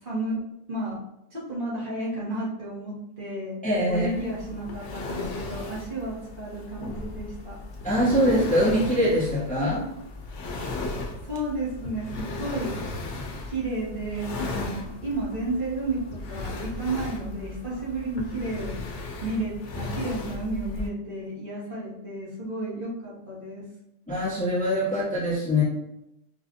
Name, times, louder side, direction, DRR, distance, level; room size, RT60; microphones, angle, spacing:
voice 1, 0.0-0.4 0.7-1.0 1.3-3.6 3.9-7.6 11.3-12.7 13.5-16.0 16.3-18.7 19.2-23.7, right 2 dB, 50° right, -7 dB, 1.4 m, -32 dB
voice 2, 3.6-4.1 7.8-9.9 24.1-25.6, equal, 10° left, -8 dB, 0.9 m, -23 dB
sound 1, 3.9-20.9, left 2 dB, 90° left, 0.9 m, -36 dB
4.9 x 2.4 x 2.5 m, 0.84 s
omnidirectional pair, 1.1 m